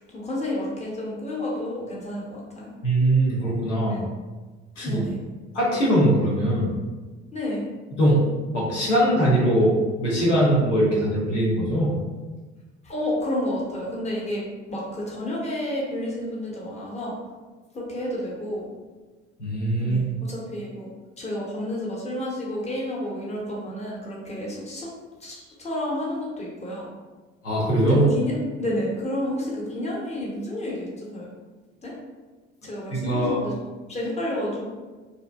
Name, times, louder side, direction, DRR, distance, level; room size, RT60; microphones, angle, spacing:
voice 1, 0.0-2.8 3.9-4.1 4.8-5.2 7.3-7.6 12.8-14.4 14.7-17.2 17.7-18.7 19.8-20.9 21.2-24.9 25.2-26.9 27.8-31.3 31.8-31.9 32.6-33.6 33.9-34.7, left 1 dB, 20° left, -4 dB, 0.8 m, -30 dB
voice 2, 2.8-4.0 4.8-5.0 5.5-6.7 7.9-8.3 8.5-9.7 10.0-11.9 19.4-20.0 27.4-28.1 32.9-33.4, right 1 dB, 85° left, -6 dB, 0.6 m, -21 dB
2.6 x 2.0 x 2.3 m, 1.3 s
figure-of-eight pair, 55°, 35 cm